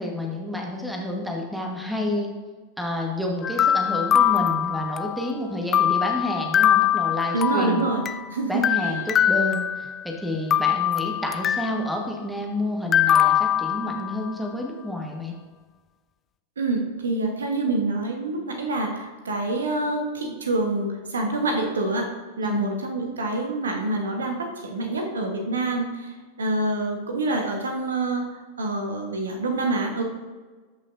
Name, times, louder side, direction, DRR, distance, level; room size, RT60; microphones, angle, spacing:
voice 1, 0.0-2.3 2.8-7.9 8.5-15.3 22.4-22.8, left 1 dB, ahead, 0 dB, 1.4 m, -29 dB
sound 1, 3.4-5.3 5.7-8.3 8.6-10.1 10.5-11.9 12.9-14.3, left 10 dB, 25° left, 0.4 m, -22 dB
voice 2, 7.3-8.0 8.3-9.0 16.6-22.1 22.4-30.0, right 2 dB, 70° right, 3 dB, 1.2 m, -26 dB
13.0 x 5.7 x 2.6 m, 1.3 s
figure-of-eight pair, 90°, 0 cm